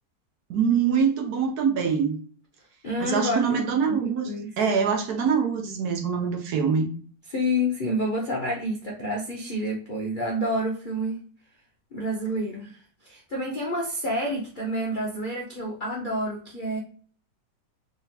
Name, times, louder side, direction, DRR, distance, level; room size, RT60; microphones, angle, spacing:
voice 1, 0.5-2.2 3.0-4.3 4.6-6.9, right 6 dB, 65° right, 3 dB, 1.1 m, -24 dB
voice 2, 2.8-3.6 3.9-4.5 7.3-11.2 11.9-16.8, equal, 65° left, -2 dB, 0.5 m, -29 dB
3.5 x 3.4 x 2.8 m, 0.44 s
omnidirectional pair, 1.9 m